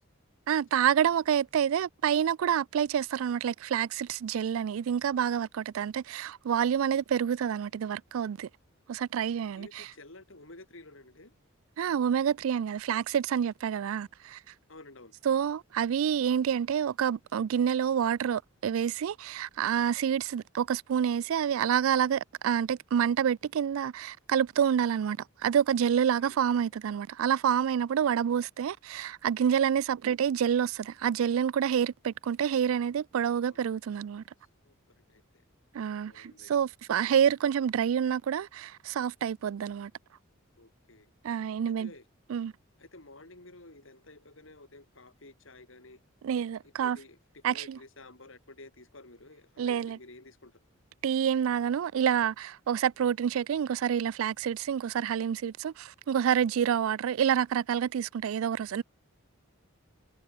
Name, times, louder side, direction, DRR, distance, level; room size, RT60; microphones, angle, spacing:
voice 1, 0.5-8.5 8.9-9.8 11.8-14.4 15.3-25.2 25.4-34.2 35.7-39.9 41.2-41.9 42.3-42.5 46.2-47.0 47.4-47.8 49.6-50.0 51.0-58.8, right 8 dB, 75° right, 0.3 m, -28 dB
voice 2, 9.5-11.3 14.7-15.1 26.1-26.4 33.3-33.7 34.6-35.4 36.0-36.5 40.6-41.1 41.7-42.1 42.8-46.0 46.6-50.6, left 2 dB, 70° left, 3.7 m, -52 dB
head